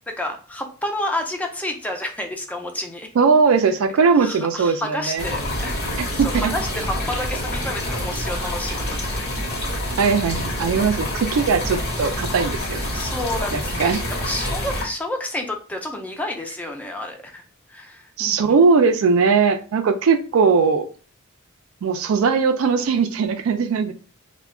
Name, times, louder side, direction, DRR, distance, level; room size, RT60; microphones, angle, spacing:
voice 1, 0.1-3.1 4.0-6.1 6.3-9.4 11.7-11.8 12.9-13.8 14.2-17.4 17.7-18.6, left 1 dB, 5° left, 3 dB, 0.4 m, -30 dB
voice 2, 3.2-5.2 6.0-6.5 10.0-13.0 13.5-14.0 18.2-20.9 21.8-23.9, right 5 dB, 75° right, 7 dB, 0.4 m, -19 dB
sound 1, 5.2-14.8, left 1 dB, 50° left, 0.9 m, -27 dB
2.3 x 2.1 x 3.5 m, 0.38 s
head